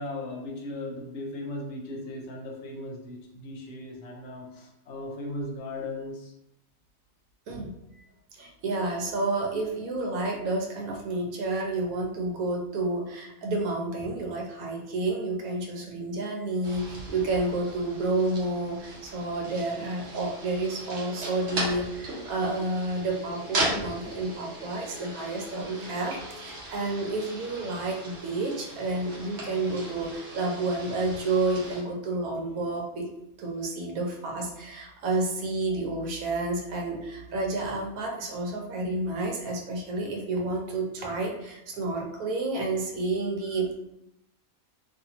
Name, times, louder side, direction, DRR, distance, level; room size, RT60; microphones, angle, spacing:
voice 1, 0.0-6.3, left 1 dB, 65° left, 0 dB, 0.9 m, -37 dB
voice 2, 8.4-33.1 33.4-43.8, right 2 dB, 90° right, 0 dB, 1.1 m, -30 dB
sound 1, 16.6-31.8, right 1 dB, 60° right, 1.0 m, -38 dB
2.6 x 2.4 x 2.8 m, 0.83 s
omnidirectional pair, 1.5 m